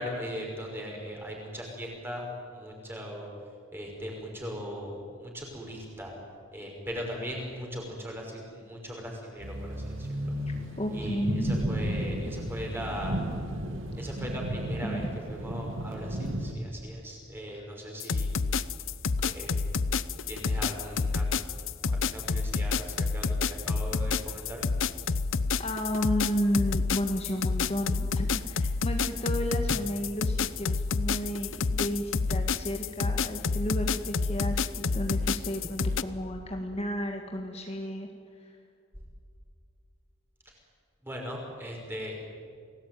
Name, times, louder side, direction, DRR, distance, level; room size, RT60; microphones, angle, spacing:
voice 1, 0.0-2.2 2.5-3.3 3.7-6.1 6.5-10.1 10.9-13.2 14.0-15.0 15.3-18.4 19.2-19.5 20.3-21.3 21.9-24.6 41.0-42.2, equal, 10° right, 0 dB, 5.8 m, -39 dB
sound 1, 9.4-16.6, right 1 dB, 65° right, 2.6 m, -33 dB
voice 2, 10.8-11.6 14.8-15.0 16.2-16.3 17.5-17.7 19.2-19.3 25.6-38.1 38.4-38.6, equal, 30° left, 2 dB, 1.8 m, -32 dB
sound 2, 18.0-36.0, left 4 dB, 65° left, 0.7 m, -28 dB
29.0 x 19.5 x 9.4 m, 2.3 s
head